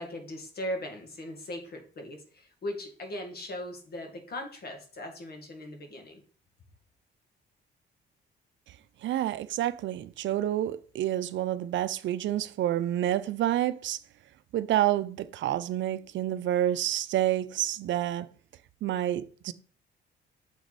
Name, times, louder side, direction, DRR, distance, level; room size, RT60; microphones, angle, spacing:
voice 1, 0.0-6.2, left 1 dB, 55° left, 1.9 m, -39 dB
voice 2, 9.0-14.0 14.5-18.3 18.8-19.5, right 12 dB, 70° right, 0.5 m, -28 dB
7.0 x 4.7 x 4.1 m
cardioid pair, 90°, 20 cm